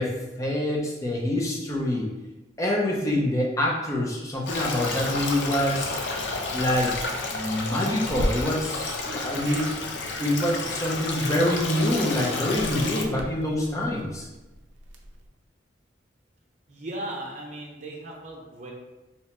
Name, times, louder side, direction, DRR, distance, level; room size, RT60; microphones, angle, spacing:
voice 1, 0.0-2.1 2.6-5.9 6.5-7.0 7.3-9.7 10.2-14.3, left 1 dB, 15° left, -3 dB, 0.5 m, -26 dB
Stream, 4.5-13.0, left 3 dB, 70° left, 0.5 m, -31 dB
sound 1, 8.0-8.3 9.4-9.7 12.4-15.3, right 1 dB, 80° right, 0.5 m, -36 dB
voice 2, 16.7-18.7, right 1 dB, 40° right, -2 dB, 0.6 m, -37 dB
2.9 x 2.3 x 4.2 m, 1.1 s
head